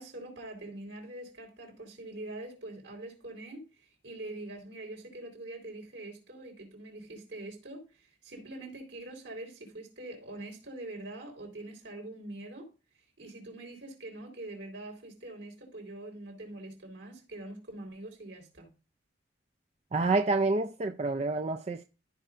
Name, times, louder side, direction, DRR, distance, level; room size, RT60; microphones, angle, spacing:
voice 1, 0.0-12.7 13.2-18.7, right 2 dB, 75° right, 3.8 m, -44 dB
voice 2, 19.9-21.8, right 3 dB, 35° right, 0.4 m, -28 dB
14.0 x 5.5 x 2.5 m
head